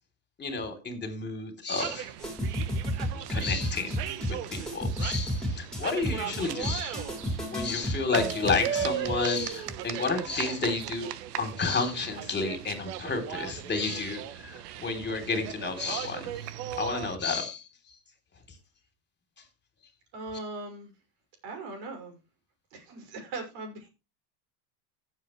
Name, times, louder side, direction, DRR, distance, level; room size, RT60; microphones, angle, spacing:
voice 1, 0.4-2.1 3.3-4.0 4.3-11.1 11.4-16.4 16.8-17.7, left 4 dB, 20° left, 7 dB, 3.5 m, -31 dB
sound 1, 1.7-17.2, right 11 dB, 70° right, 1.3 m, -37 dB
sound 2, 2.2-9.8, equal, ahead, 5.2 m, -32 dB
voice 2, 20.1-20.9 21.4-22.2 22.7-23.9, right 3 dB, 55° right, 4 dB, 5.9 m, -39 dB
15.0 x 7.8 x 3.2 m, 0.29 s
hypercardioid pair, 105°, 49 cm